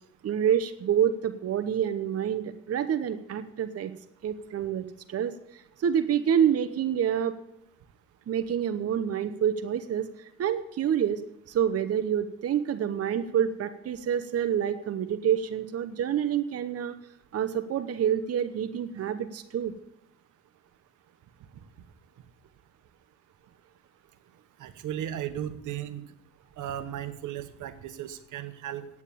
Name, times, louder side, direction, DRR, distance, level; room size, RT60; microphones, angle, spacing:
voice 1, 0.2-3.9 4.2-7.3 8.3-11.2 11.5-17.0 17.3-19.7, right 9 dB, 50° right, 10 dB, 0.8 m, -27 dB
voice 2, 24.6-26.0 26.6-28.9, right 11 dB, 80° right, 11 dB, 1.1 m, -35 dB
9.7 x 8.4 x 8.5 m, 0.83 s
cardioid pair, 90°, 30 cm